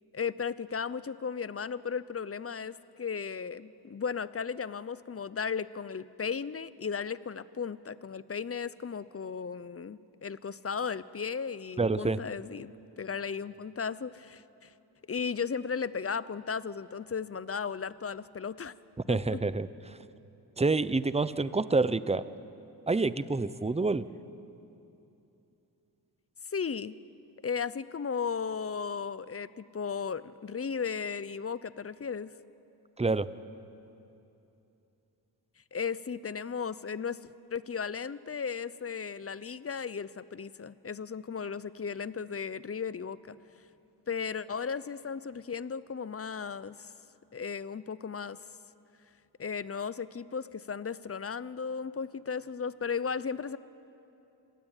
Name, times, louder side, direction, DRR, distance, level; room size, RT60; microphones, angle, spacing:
voice 1, 0.1-12.7 13.0-14.7 15.1-18.7 19.1-19.4 26.5-27.0 27.4-32.3 35.7-43.4 44.1-46.9 47.3-48.4 49.4-53.6, left 6 dB, 35° left, 17 dB, 0.8 m, -35 dB
voice 2, 11.8-12.2 19.1-20.0 20.6-22.3 22.9-24.1 33.0-33.3, right 3 dB, 15° right, 15 dB, 0.8 m, -28 dB
26.5 x 19.0 x 9.1 m, 2.9 s
cardioid pair, 75°, 41 cm